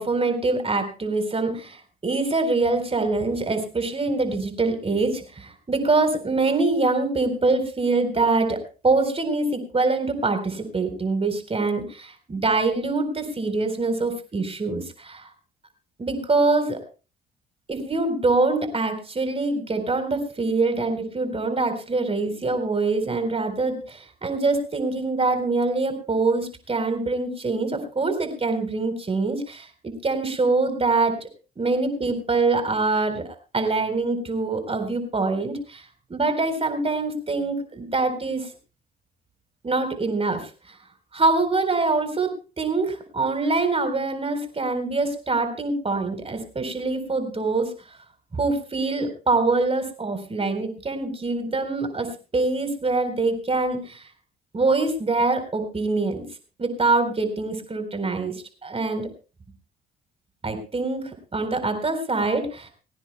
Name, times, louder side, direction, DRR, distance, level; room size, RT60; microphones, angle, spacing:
voice 1, 0.0-15.3 16.0-16.8 17.7-31.3 31.6-38.5 39.6-40.8 41.1-47.7 48.3-54.1 54.5-56.3 56.6-58.3 58.6-59.1 60.4-62.7, right 3 dB, 30° right, 7 dB, 3.9 m, -24 dB
21.5 x 17.5 x 2.2 m, 0.34 s
supercardioid pair, 60°, 19 cm